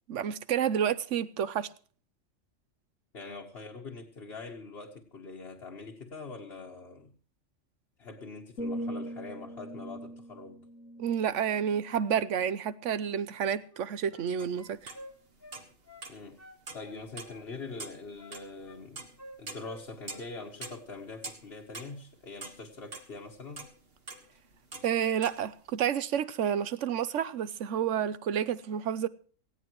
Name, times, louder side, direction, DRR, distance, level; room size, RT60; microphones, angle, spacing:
voice 1, 0.1-1.7 11.0-14.9 24.8-29.1, right 8 dB, 70° right, 1.1 m, -30 dB
voice 2, 3.1-7.1 8.0-10.6 16.1-16.4 16.7-19.1 19.4-23.7, left 3 dB, 50° left, 1.6 m, -43 dB
sound 1, 8.6-12.5 13.0-13.3, equal, 70° left, 1.4 m, -41 dB
sound 2, 13.6-14.3 14.5-16.1 16.4-17.5 17.8-18.8 19.2-20.3 20.6-20.8, equal, 10° left, 1.8 m, -51 dB
sound 3, 14.4-15.0 15.3-16.3 16.7-17.4 17.7-20.3 20.6-23.1 23.5-25.4, right 3 dB, 50° right, 1.8 m, -44 dB
18.5 x 15.5 x 3.1 m
omnidirectional pair, 1.4 m